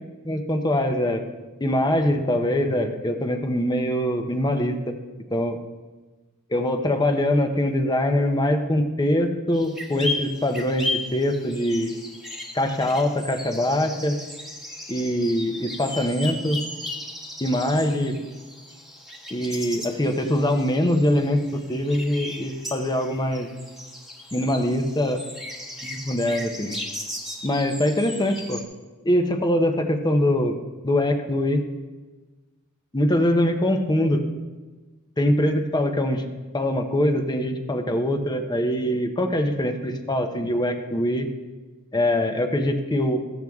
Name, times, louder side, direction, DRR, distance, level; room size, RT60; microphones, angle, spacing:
voice 1, 0.2-1.2 1.6-4.9 5.3-5.6 6.5-11.9 12.5-14.2 14.9-16.6 17.4-18.2 19.3-23.5 24.3-25.2 25.8-26.8 27.4-28.6 29.0-30.5 30.8-31.6 32.9-34.2 35.2-36.3 36.5-41.3 41.9-43.2, left 1 dB, 20° left, 6 dB, 0.8 m, -23 dB
sound 1, 9.5-28.6, left 1 dB, ahead, 1.4 m, -36 dB
14.5 x 7.7 x 3.6 m, 1.3 s
head